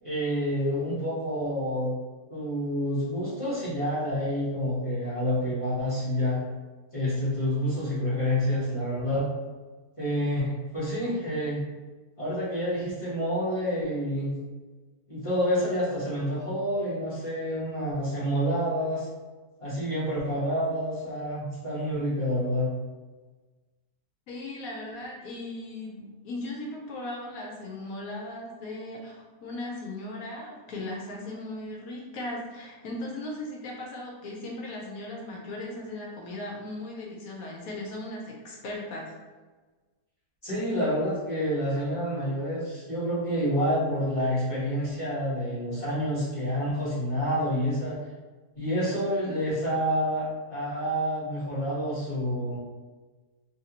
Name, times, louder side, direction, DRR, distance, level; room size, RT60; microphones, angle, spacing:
voice 1, 0.0-1.9 2.3-6.4 6.9-9.3 10.0-11.6 12.2-14.3 15.1-19.1 19.6-22.7 40.4-48.0 48.6-52.6, equal, 25° left, -11 dB, 1.0 m, -28 dB
voice 2, 24.3-39.1, left 1 dB, 70° left, -1 dB, 1.0 m, -37 dB
3.1 x 2.6 x 2.8 m, 1.3 s
omnidirectional pair, 1.7 m